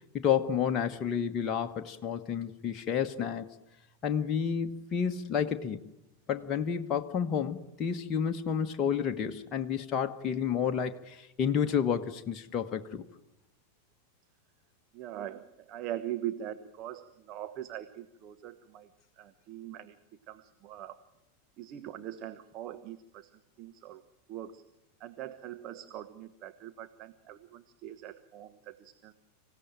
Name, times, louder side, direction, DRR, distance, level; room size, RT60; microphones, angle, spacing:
voice 1, 0.1-3.5 4.0-5.9 6.3-13.0, left 7 dB, 30° left, 1.3 m, -30 dB
voice 2, 14.9-18.9 19.2-20.0 20.3-21.0 21.6-23.3 23.6-24.0 24.3-24.6 25.0-29.1, right 12 dB, 35° right, 1.2 m, -42 dB
25.5 x 16.0 x 9.1 m
figure-of-eight pair, 90°, 0 cm